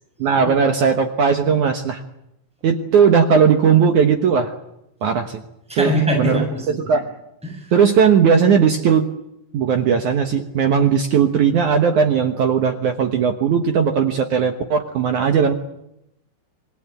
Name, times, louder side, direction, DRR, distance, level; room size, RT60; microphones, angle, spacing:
voice 1, 0.2-2.0 2.6-4.5 5.0-5.4 5.8-6.4 6.9-7.0 7.7-9.1 9.5-15.5, right 6 dB, 65° right, 5 dB, 2.0 m, -17 dB
voice 2, 5.7-6.8 7.4-7.7, equal, ahead, 1 dB, 7.5 m, -22 dB
26.0 x 19.5 x 9.0 m, 0.84 s
omnidirectional pair, 5.1 m